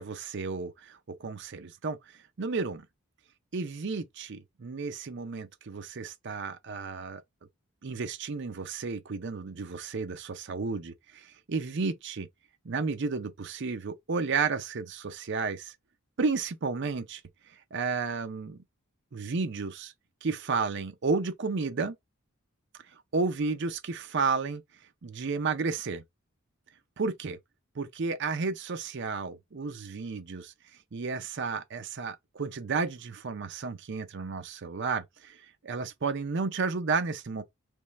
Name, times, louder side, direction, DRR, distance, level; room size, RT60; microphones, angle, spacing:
voice 1, 0.0-2.0 2.4-2.8 3.5-7.2 7.8-12.3 12.7-15.7 16.2-17.2 17.5-18.6 19.1-19.9 20.2-22.0 23.1-24.6 25.0-26.0 27.0-27.4 27.8-30.5 30.9-37.4, right 4 dB, 50° right, 0.5 m, -32 dB
3.6 x 3.1 x 4.1 m
head